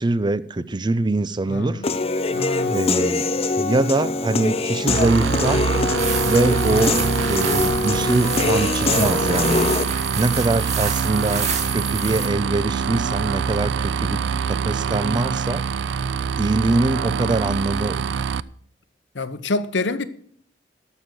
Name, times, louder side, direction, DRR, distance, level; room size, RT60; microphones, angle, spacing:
voice 1, 0.0-1.8 2.7-3.2 3.6-5.8 6.3-9.7 10.2-15.6 16.4-18.2, right 2 dB, 25° right, 0.5 m, -23 dB
voice 2, 1.5-1.9 2.3-2.8 19.1-20.0, left 3 dB, 85° left, 0.9 m, -26 dB
Human voice / Piano, 1.8-9.8, left 3 dB, 35° left, 0.7 m, -23 dB
sound 1, 4.9-18.4, right 6 dB, 80° right, 0.4 m, -25 dB
sound 2, 6.0-12.3, right 5 dB, 40° right, 1.8 m, -28 dB
12.5 x 6.5 x 7.6 m
head